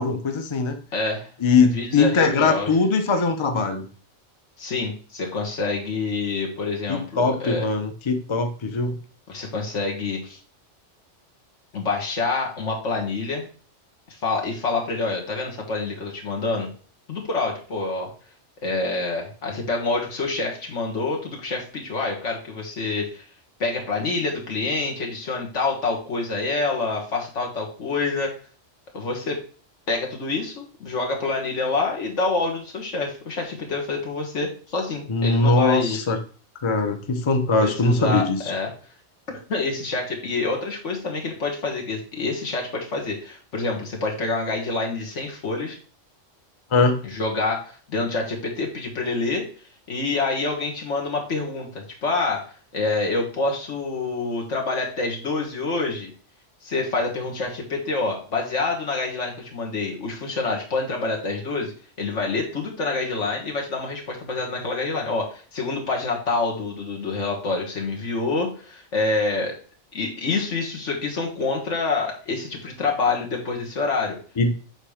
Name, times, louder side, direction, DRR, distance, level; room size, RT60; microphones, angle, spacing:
voice 1, 0.0-0.8 1.4-3.9 6.9-9.0 35.1-36.2 36.6-38.4 46.7-47.0 74.4-74.5, left 3 dB, 30° left, 6 dB, 0.7 m, -21 dB
voice 2, 0.9-1.3 1.7-2.7 4.6-7.7 9.3-10.4 11.7-13.5 14.1-16.7 17.1-18.1 18.6-23.2 23.6-28.3 28.9-29.4 29.9-36.0 37.6-38.7 39.3-45.8 47.0-49.5 49.9-56.1 56.6-69.6 69.9-74.2, left 3 dB, 75° left, 0 dB, 2.0 m, -27 dB
7.6 x 3.1 x 5.0 m, 0.40 s
omnidirectional pair, 1.2 m